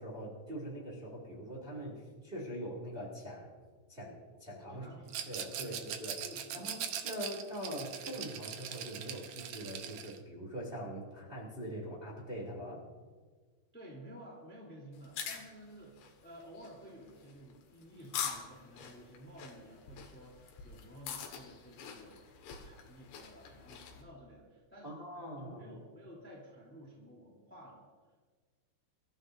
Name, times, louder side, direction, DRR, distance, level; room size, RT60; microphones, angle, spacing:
voice 1, 0.0-3.5 3.9-4.8 5.3-6.2 6.5-6.8 7.0-12.8 24.8-25.6, equal, 15° right, -4 dB, 2.1 m, -43 dB
voice 2, 4.7-5.2 5.6-5.8 6.2-6.7 13.7-25.1 25.4-27.8, equal, 5° left, -4 dB, 2.4 m, -53 dB
Rattle, 5.1-10.2, right 9 dB, 85° right, 1.8 m, -41 dB
sound 1, 14.9-24.0, left 7 dB, 85° left, 3.9 m, -45 dB
25.5 x 14.0 x 2.7 m, 1.5 s
omnidirectional pair, 5.1 m